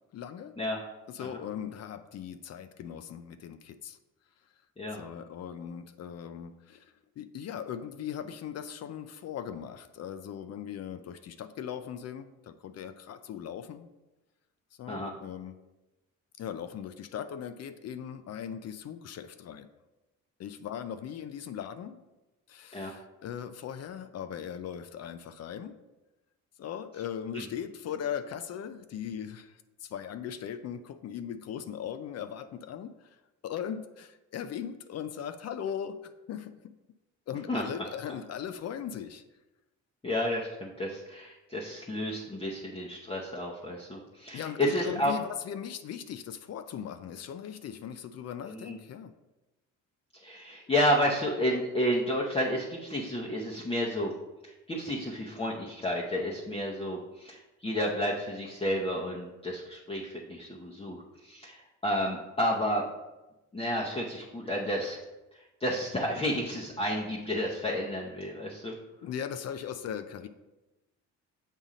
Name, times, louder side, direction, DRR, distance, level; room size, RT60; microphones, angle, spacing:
voice 1, 0.1-0.5 1.1-4.0 4.9-13.9 14.8-15.6 16.4-19.7 20.4-22.0 22.5-25.8 26.6-33.2 33.4-36.7 37.3-39.2 44.3-49.1 69.0-70.3, left 8 dB, 55° left, 10 dB, 0.5 m, -39 dB
voice 2, 40.0-45.1 48.5-48.7 50.2-54.1 54.4-62.8 63.5-65.0 65.6-68.7, equal, 20° left, -4 dB, 0.8 m, -31 dB
7.3 x 2.6 x 4.9 m, 1.0 s
cardioid pair, 90°, 30 cm